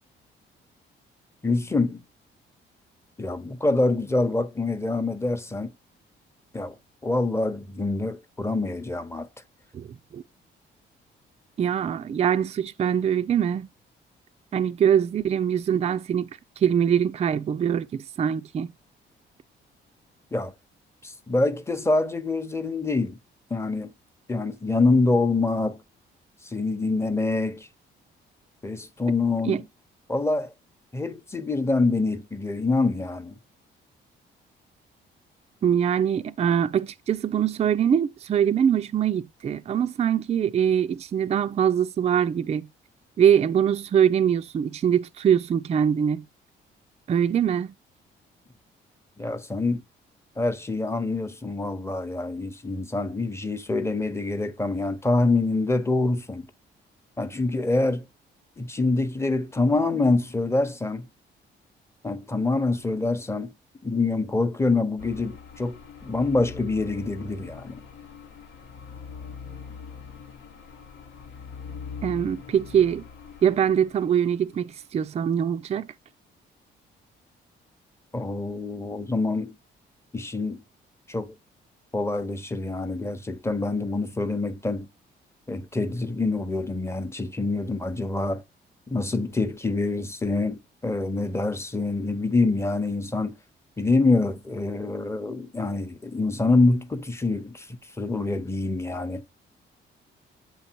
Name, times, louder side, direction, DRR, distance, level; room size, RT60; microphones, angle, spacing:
voice 1, 1.4-2.0 3.2-5.7 6.5-6.8 7.0-9.3 20.3-20.5 21.0-23.2 23.5-23.9 24.3-25.8 26.4-27.7 28.6-29.6 30.1-30.5 30.9-33.4 49.2-49.8 50.4-56.5 57.2-58.0 58.6-61.1 62.0-63.5 63.8-67.8 78.1-79.5 80.1-80.6 81.1-81.3 81.9-84.9 85.5-88.4 88.9-93.3 93.8-99.2, left 3 dB, 15° left, 0.8 m, -25 dB
voice 2, 11.6-13.7 14.5-16.3 16.6-18.7 29.5-29.6 35.6-42.7 43.2-46.2 47.1-47.7 72.0-73.0 73.4-75.9, right 8 dB, 35° right, 0.4 m, -23 dB
sound 1, 65.0-74.6, left 6 dB, 80° left, 1.1 m, -42 dB
7.8 x 3.4 x 4.5 m
cardioid pair, 90°, 20 cm